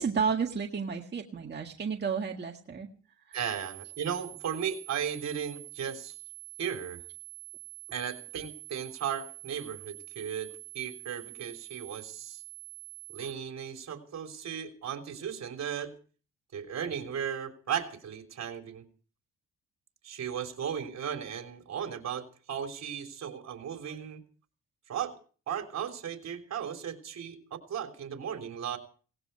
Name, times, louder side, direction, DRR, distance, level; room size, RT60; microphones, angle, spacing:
voice 1, 0.0-2.9 3.3-3.4, right 6 dB, 35° right, 1 dB, 1.9 m, -31 dB
voice 2, 3.3-6.1 6.6-7.0 7.9-12.4 13.1-15.9 16.5-18.8 20.0-24.2 24.9-25.1 25.5-28.8, right 8 dB, 60° right, 6 dB, 3.5 m, -36 dB
sound 1, 3.3-13.3, right 21 dB, 80° right, 2.5 m, -47 dB
18.5 x 16.0 x 4.6 m, 0.41 s
cardioid pair, 90°, 30 cm